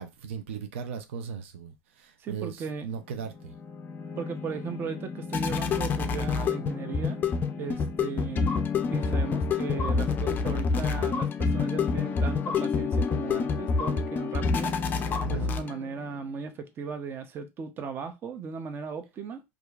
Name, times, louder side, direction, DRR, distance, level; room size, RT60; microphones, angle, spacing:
voice 1, 0.0-3.5 15.2-15.5, right 6 dB, 90° right, 0.4 m, -37 dB
voice 2, 2.2-2.9 4.2-7.2 7.6-8.5 8.9-14.7 15.3-19.4, right 5 dB, 35° right, 0.6 m, -37 dB
sound 1, 3.2-16.0, left 5 dB, 30° left, 0.4 m, -28 dB
2.8 x 2.5 x 2.3 m
supercardioid pair, 115°, 6 cm